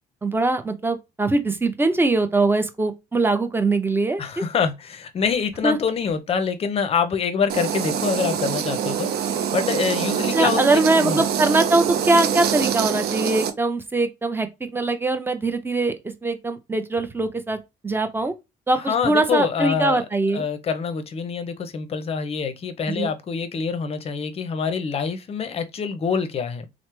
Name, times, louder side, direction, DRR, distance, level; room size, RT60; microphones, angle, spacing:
voice 1, 0.2-4.2 5.6-5.8 10.3-16.0 16.2-17.6 17.8-18.3 18.7-20.4 22.9-23.1, right 2 dB, 15° right, 0.5 m, -22 dB
voice 2, 4.2-11.2 18.9-20.0 20.3-26.6, left 6 dB, 35° left, 0.6 m, -25 dB
sound 1, 7.5-13.5, right 8 dB, 70° right, 0.5 m, -25 dB
3.2 x 2.0 x 3.0 m
cardioid pair, 110°, 17 cm